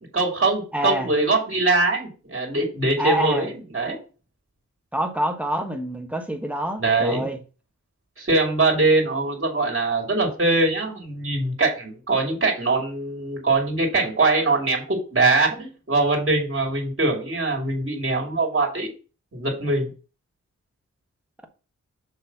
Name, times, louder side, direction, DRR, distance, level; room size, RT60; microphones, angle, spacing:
voice 1, 0.1-4.0 6.8-7.3 8.2-18.9 19.3-19.9, right 2 dB, 40° right, 2.6 m, -22 dB
voice 2, 0.7-1.1 3.0-3.5 4.9-7.4, right 1 dB, 5° right, 1.4 m, -26 dB
6.8 x 3.3 x 5.6 m
wide cardioid pair, 70°, 31 cm